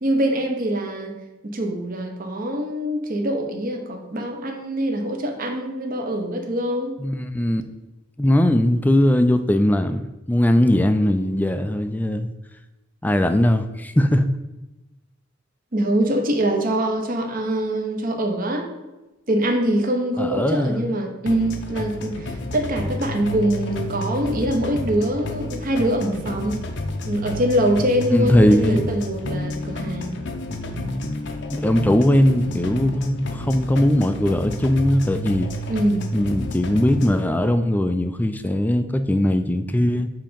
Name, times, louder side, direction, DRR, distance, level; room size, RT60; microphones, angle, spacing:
voice 1, 0.0-1.1 1.4-7.0 15.7-18.7 19.3-26.6 27.1-30.1 35.7-36.1, right 1 dB, 45° right, 3 dB, 0.9 m, -24 dB
voice 2, 7.0-7.6 8.2-12.3 13.0-14.2 20.2-20.8 28.1-28.8 31.5-35.5 36.1-40.1, left 1 dB, 10° left, 9 dB, 0.3 m, -19 dB
sound 1, 21.3-37.2, left 1 dB, 60° left, 0.6 m, -30 dB
7.5 x 2.9 x 5.1 m, 1.1 s
head